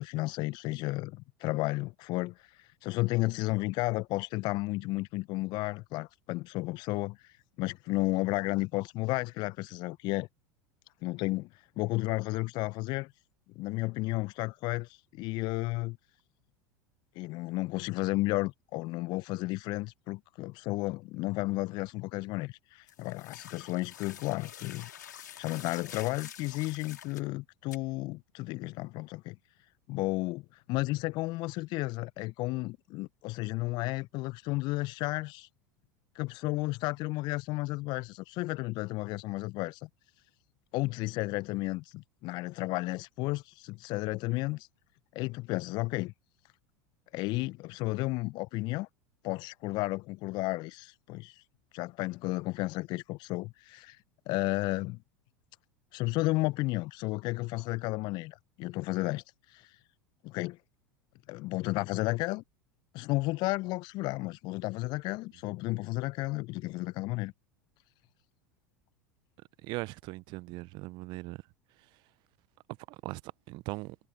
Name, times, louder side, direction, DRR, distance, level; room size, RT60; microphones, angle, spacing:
voice 1, 0.0-10.3 11.0-13.1 13.6-16.0 17.2-29.4 29.9-30.4 30.7-35.5 36.1-39.9 40.7-44.7 45.1-46.1 47.1-48.9 49.2-51.4 51.7-54.0 54.3-55.0 55.9-59.8 60.2-60.6 61.3-62.4 62.9-67.3, left 21 dB, 50° left, 0.6 m, -33 dB
sound 1, 22.9-27.3 27.7-27.8, left 9 dB, 75° left, 4.0 m, -47 dB
voice 2, 69.6-71.4 72.9-73.2 73.5-74.0, right 23 dB, 50° right, 0.6 m, -39 dB
figure-of-eight pair, 80°, 10 cm